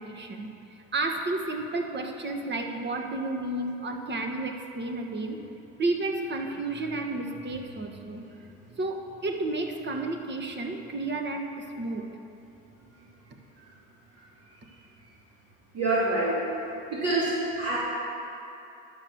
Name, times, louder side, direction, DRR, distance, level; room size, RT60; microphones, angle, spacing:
voice 1, 0.0-5.4 5.8-8.2 8.8-12.0, right 2 dB, 35° right, 4 dB, 1.3 m, -32 dB
voice 2, 7.7-8.0 12.9-13.0 13.6-13.7 14.1-14.2 14.7-14.8 15.7-16.5 16.9-17.8, right 2 dB, 50° right, -8 dB, 2.8 m, -28 dB
11.0 x 6.1 x 7.1 m, 2.9 s
supercardioid pair, 80°, 31 cm